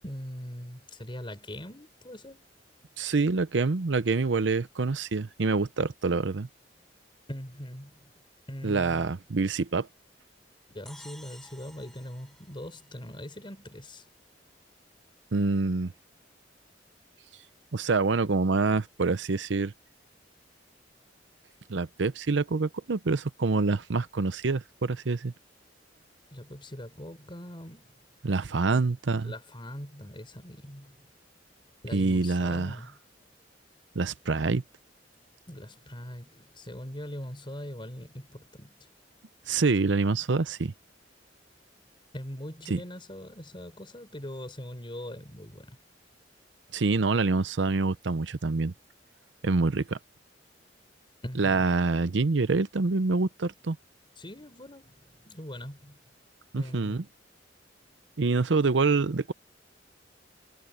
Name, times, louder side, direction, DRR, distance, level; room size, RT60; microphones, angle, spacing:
voice 1, 0.0-2.5 7.3-8.1 8.5-9.1 10.7-14.1 26.3-27.9 28.7-28.8 29.2-31.0 31.8-32.9 35.5-38.8 42.1-45.8 51.2-51.7 54.2-56.0 56.5-57.0, equal, 30° left, 4.1 m, -41 dB
voice 2, 3.0-6.5 8.6-9.9 15.3-15.9 17.7-19.7 21.7-25.3 28.2-29.3 31.9-32.8 33.9-34.6 39.5-40.7 42.7-42.8 46.7-48.7 49.4-50.0 51.4-53.8 56.5-57.0 58.2-59.3, right 3 dB, 85° right, 0.7 m, -26 dB
sound 1, 10.9-13.4, equal, ahead, 6.4 m, -53 dB
head